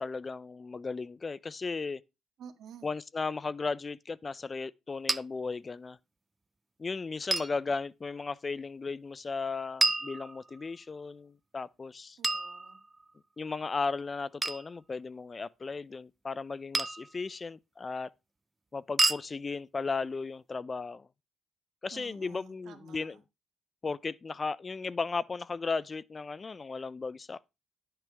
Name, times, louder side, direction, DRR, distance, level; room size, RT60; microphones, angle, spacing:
voice 1, 0.0-2.0 2.8-6.0 6.8-12.2 13.4-18.1 18.7-21.1 21.8-23.2 23.8-27.4, left 4 dB, 30° left, 0.5 m, -36 dB
voice 2, 2.4-2.9 12.2-12.8 21.9-23.2, right 7 dB, 75° right, 1.9 m, -51 dB
sound 1, 5.1-5.2 7.3-7.6 9.8-10.7 12.2-13.1 14.4-14.7 16.7-17.1 19.0-19.3, right 2 dB, 20° right, 0.6 m, -29 dB
12.0 x 8.9 x 3.5 m
cardioid pair, 90°, 0 cm